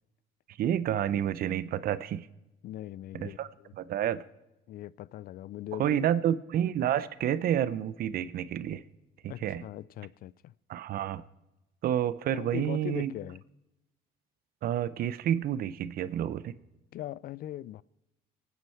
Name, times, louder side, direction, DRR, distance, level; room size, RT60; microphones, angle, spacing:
voice 1, 0.6-2.3 3.1-3.5 3.8-4.2 5.8-8.8 9.2-9.6 10.7-11.2 11.8-13.1 14.6-16.5, right 10 dB, 60° right, 0.8 m, -29 dB
voice 2, 2.6-3.7 4.7-6.0 9.3-10.5 12.3-13.4 16.9-17.8, left 13 dB, 60° left, 0.4 m, -40 dB
24.0 x 9.5 x 4.6 m
cardioid pair, 110°, 17 cm